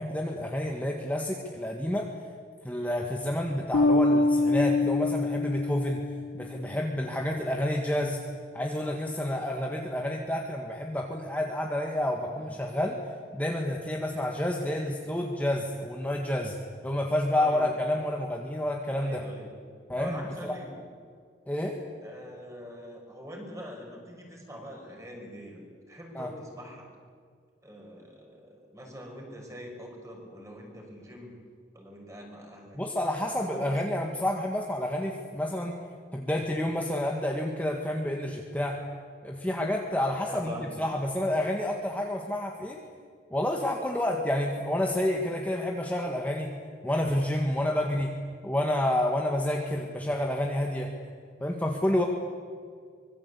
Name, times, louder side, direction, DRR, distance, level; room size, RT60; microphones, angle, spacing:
voice 1, 0.0-2.1 2.6-6.0 6.3-8.2 8.5-13.0 13.3-16.6 16.8-19.2 19.9-20.5 21.5-21.8 26.1-26.3 32.7-35.8 36.1-38.8 39.2-42.8 43.3-46.5 46.8-48.1 48.4-50.9 51.4-52.1, left 1 dB, 10° left, 0 dB, 1.7 m, -29 dB
Bass guitar, 3.7-6.4, left 2 dB, 75° left, 1.4 m, -25 dB
voice 2, 17.3-17.6 18.9-19.5 20.0-20.7 22.0-25.6 25.9-26.9 27.6-31.3 31.7-32.8 33.5-33.8 40.2-40.7, equal, 20° right, 1 dB, 6.0 m, -43 dB
24.5 x 22.5 x 8.5 m, 2.1 s
head